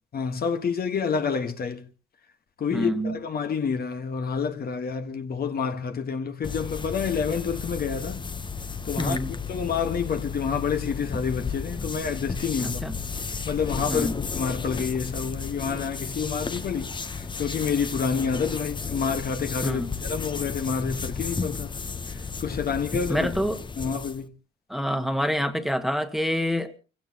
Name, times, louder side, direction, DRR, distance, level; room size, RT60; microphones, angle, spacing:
voice 1, 0.1-1.9 2.6-8.2 8.8-9.2 9.5-12.8 13.5-21.8 22.4-23.3 23.8-24.3, left 6 dB, 50° left, 1.4 m, -28 dB
voice 2, 2.7-3.1 9.0-9.3 12.6-12.9 13.9-14.1 19.6-19.9 23.1-23.6 24.7-26.7, equal, ahead, 1.4 m, -26 dB
sound 1, 6.4-24.2, left 5 dB, 25° left, 0.9 m, -33 dB
29.5 x 16.0 x 2.9 m
cardioid pair, 90°, 20 cm